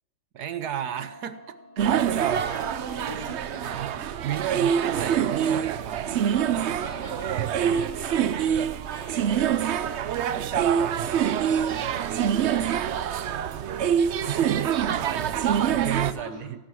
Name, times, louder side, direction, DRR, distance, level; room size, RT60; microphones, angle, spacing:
voice 1, 0.3-1.8 3.6-6.4 10.4-12.0 14.3-14.7 15.0-15.5 15.8-16.6, right 10 dB, 75° right, 11 dB, 1.4 m, -34 dB
sound 1, 0.6-15.8, equal, 80° left, 5.3 m, -51 dB
sound 2, 1.8-16.1, right 8 dB, 60° right, 0.7 m, -25 dB
voice 2, 2.2-3.6 4.3-4.5 6.8-10.1 15.0-15.1 15.5-15.8 16.1-16.7, left 1 dB, 35° left, 0 dB, 4.0 m, -44 dB
17.0 x 11.5 x 6.2 m, 1.1 s
omnidirectional pair, 1.7 m